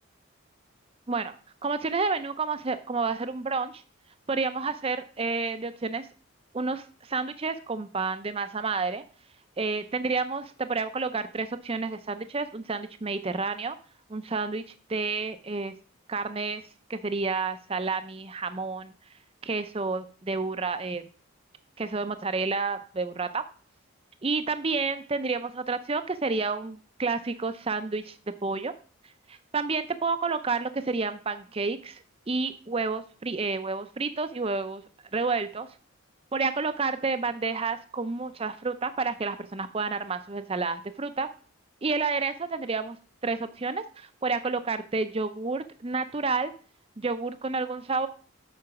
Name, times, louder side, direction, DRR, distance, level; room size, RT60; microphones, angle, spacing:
voice 1, 1.6-3.8 4.3-6.1 6.5-9.0 9.6-13.8 14.1-14.6 14.9-15.7 16.1-16.6 16.9-18.9 19.4-21.0 21.8-23.4 24.2-28.2 28.4-28.7 29.3-34.8 35.1-35.7 36.3-41.3 41.8-43.0 43.2-46.5 47.0-48.1, right 4 dB, 25° right, 11 dB, 0.5 m, -30 dB
7.8 x 5.0 x 5.7 m, 0.39 s
head